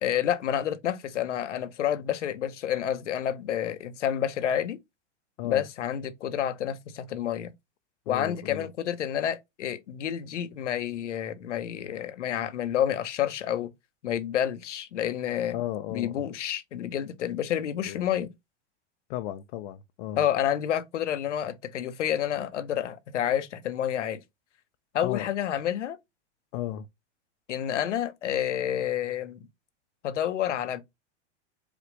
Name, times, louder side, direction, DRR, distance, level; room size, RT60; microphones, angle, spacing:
voice 1, 0.0-4.8 5.4-7.5 8.1-13.7 14.0-15.6 15.9-18.3 20.2-24.2 24.9-26.0 27.5-29.4 30.0-30.8, left 10 dB, 85° left, 0.8 m, -29 dB
voice 2, 8.1-8.7 15.5-16.3 17.8-18.1 19.1-20.2 25.0-25.3 26.5-26.9, left 13 dB, 50° left, 0.5 m, -34 dB
5.1 x 2.4 x 3.1 m
hypercardioid pair, 110°, 35 cm